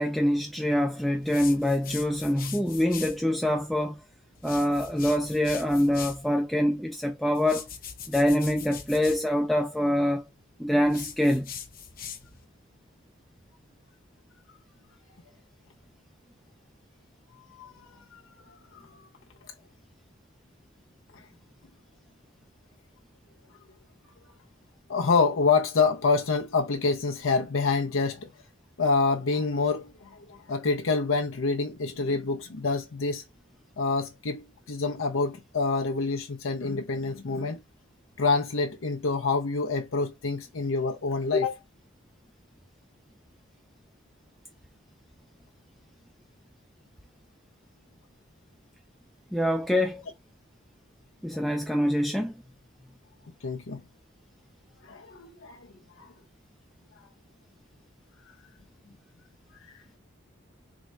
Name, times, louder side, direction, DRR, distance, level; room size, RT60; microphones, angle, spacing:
voice 1, 0.0-4.0 4.4-7.7 8.1-10.2 10.6-11.5 49.3-50.0 51.2-52.3, left 1 dB, ahead, 0.3 m, -25 dB
sound 1, 1.2-3.2 4.3-6.3 7.3-9.2 10.8-12.4, left 8 dB, 45° left, 0.7 m, -41 dB
voice 2, 17.6-18.2 24.9-28.3 28.8-33.2 33.8-37.6 38.2-41.5 53.4-53.8 54.8-55.7 56.0-56.1, left 4 dB, 80° left, 0.6 m, -27 dB
3.7 x 2.1 x 4.3 m
head